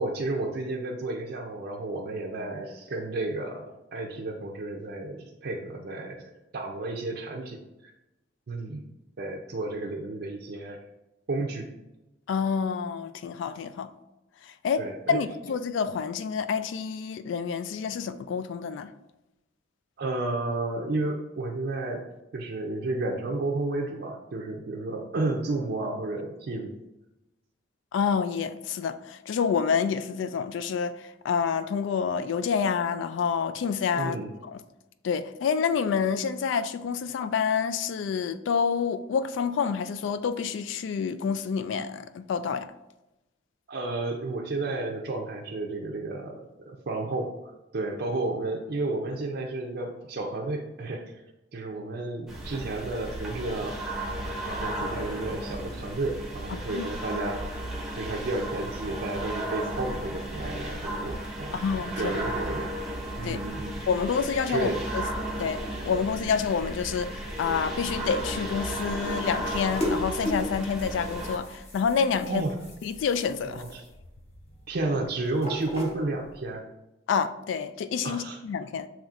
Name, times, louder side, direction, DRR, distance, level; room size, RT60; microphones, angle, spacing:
voice 1, 0.0-7.9 8.5-8.9 9.2-10.8 11.3-11.7 14.8-15.2 20.0-22.0 22.3-26.8 34.0-34.3 43.7-47.4 47.7-51.2 51.5-53.8 54.5-57.6 58.0-61.6 62.0-62.7 63.2-63.7 64.5-64.8 72.2-72.6 73.4-73.8 74.7-76.6 78.0-78.4, right 2 dB, 55° right, 0.5 m, -32 dB
voice 2, 12.3-13.9 14.4-18.9 27.9-34.2 34.5-34.6 35.0-42.7 56.7-56.9 61.5-62.2 63.2-63.4 63.9-65.1 65.4-72.4 72.8-73.6 77.1-78.9, left 6 dB, 70° left, 0.3 m, -28 dB
sound 1, 52.3-71.4, right 1 dB, 5° right, 0.8 m, -34 dB
sound 2, 67.3-76.5, left 1 dB, 35° left, 1.1 m, -38 dB
7.2 x 3.0 x 2.4 m
head